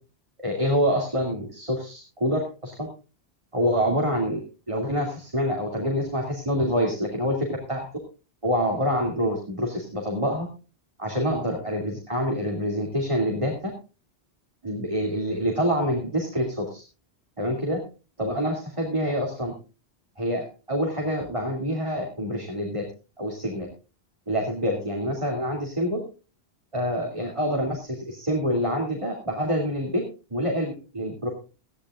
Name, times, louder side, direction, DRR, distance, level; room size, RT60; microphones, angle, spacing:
voice 1, 0.4-2.9 3.5-4.4 4.7-7.8 8.4-10.5 11.0-13.7 14.6-16.8 17.4-17.8 18.2-19.5 20.2-22.9 23.2-23.7 24.3-26.0 26.7-30.0 30.3-31.3, equal, 30° right, 0 dB, 2.7 m, -26 dB
19.5 x 14.0 x 2.5 m, 0.33 s
omnidirectional pair, 1.1 m